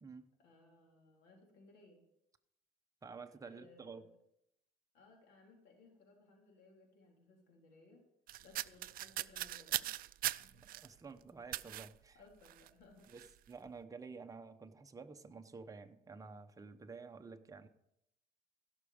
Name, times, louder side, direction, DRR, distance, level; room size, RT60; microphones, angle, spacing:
voice 1, 0.4-2.0 3.5-4.1 4.9-8.0 8.4-10.1 10.4-10.6 12.1-13.1, left 2 dB, 85° left, 0 dB, 3.8 m, -62 dB
voice 2, 3.0-4.0 10.7-12.2 13.1-17.7, right 4 dB, 20° right, 6 dB, 0.8 m, -51 dB
sound 1, 8.3-10.9 11.5-11.9 12.5-12.7 13.0-13.3, right 15 dB, 60° right, 0.4 m, -40 dB
16.0 x 6.2 x 5.1 m, 0.81 s
cardioid pair, 110°, 17 cm